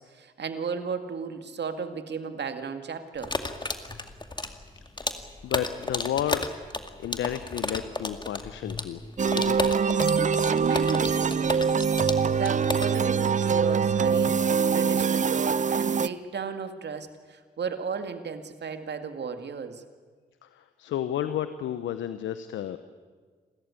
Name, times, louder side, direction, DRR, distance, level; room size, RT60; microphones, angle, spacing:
voice 1, 0.0-3.4 10.5-11.8 12.3-19.8, right 5 dB, 65° right, 8 dB, 2.1 m, -34 dB
sound 1, 3.2-14.0, left 2 dB, 25° left, 2.2 m, -33 dB
voice 2, 5.4-6.5 7.0-9.0 9.3-9.7 20.4-22.8, left 11 dB, 80° left, 12 dB, 0.9 m, -32 dB
sound 2, 9.2-16.1, right 6 dB, 40° right, 0.7 m, -24 dB
28.0 x 14.0 x 9.8 m, 1.5 s
supercardioid pair, 45°, 19 cm